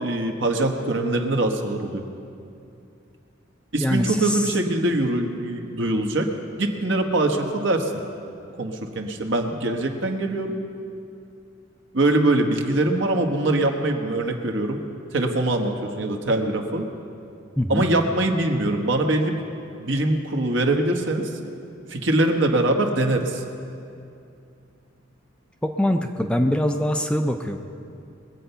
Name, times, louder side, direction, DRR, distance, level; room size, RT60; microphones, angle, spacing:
voice 1, 0.0-2.0 3.7-6.3 6.6-7.9 8.6-10.5 11.9-14.8 15.1-16.9 17.7-19.4 19.8-21.3 21.9-23.4, right 2 dB, 65° right, 4 dB, 1.2 m, -23 dB
voice 2, 3.8-4.6 17.6-17.8 25.6-27.6, equal, 5° left, 5 dB, 0.5 m, -23 dB
21.0 x 8.0 x 5.6 m, 2.6 s
head